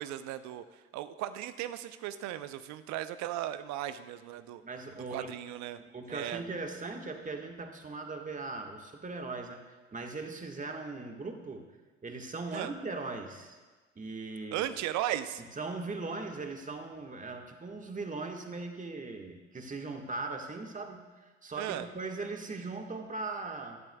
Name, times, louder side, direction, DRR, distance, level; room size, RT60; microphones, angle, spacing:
voice 1, 0.0-4.6 5.1-5.8 6.1-6.4 12.5-12.7 14.5-15.4 21.6-21.9, right 12 dB, 55° right, 13 dB, 0.7 m, -36 dB
voice 2, 4.6-5.3 5.9-9.6 9.9-11.7 12.0-13.6 14.0-14.7 15.6-23.8, right 3 dB, 25° right, 3 dB, 1.7 m, -39 dB
17.0 x 12.0 x 2.4 m, 1.3 s
hypercardioid pair, 60°, 33 cm